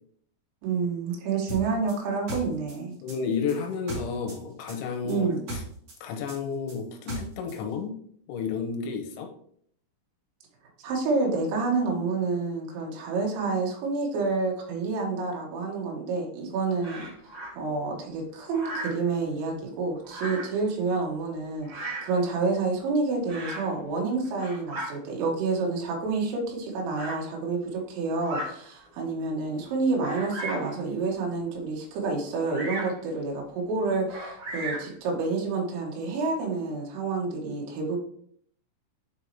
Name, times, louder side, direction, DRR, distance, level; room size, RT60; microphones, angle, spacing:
voice 1, 0.6-3.0 5.1-5.4 10.8-17.0 17.5-38.0, right 4 dB, 90° right, 0 dB, 4.0 m, -28 dB
sound 1, 1.5-4.4 4.7-7.6, right 2 dB, 50° right, 3.4 m, -37 dB
voice 2, 3.0-5.6 6.0-7.9 8.3-9.3, left 5 dB, 80° left, 3 dB, 3.0 m, -31 dB
Bird vocalization bird call bird song, 16.8-17.5 18.5-19.1 20.0-20.6 21.6-22.2 23.3-23.7 24.2-24.9 25.8-25.9 26.9-27.2 28.1-28.5 29.1-29.2 30.0-30.7 32.5-33.0 34.1-35.0, right 1 dB, 65° right, 1.5 m, -36 dB
10.5 x 4.2 x 2.9 m, 0.62 s
omnidirectional pair, 5.8 m